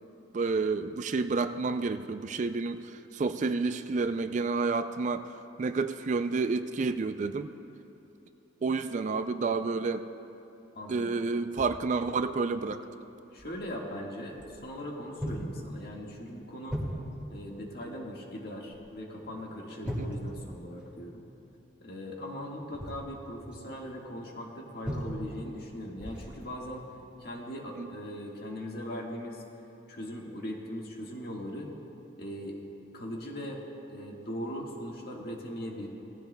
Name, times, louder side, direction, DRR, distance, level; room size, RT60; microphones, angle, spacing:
voice 1, 0.3-2.8 3.1-5.3 5.6-7.5 8.6-10.1 10.9-12.8 27.8-27.9, right 4 dB, 40° right, 10 dB, 0.4 m, -29 dB
voice 2, 10.7-11.2 13.3-16.8 17.3-21.2 21.8-26.9 27.2-29.4 29.9-31.7 32.2-32.6 32.9-33.6 33.9-35.9, equal, 55° left, -1 dB, 1.7 m, -39 dB
sound 1, 11.5-11.8 12.4-12.5 13.4-13.6 14.4-14.9 15.2-15.6 15.9-16.2 16.7-17.4 18.6-19.0 19.2-19.4 19.8-21.0 22.6-23.7 24.8-25.5 26.0-26.4 26.9-27.1, equal, 5° right, 1.9 m, -38 dB
18.5 x 15.0 x 2.2 m, 2.9 s
head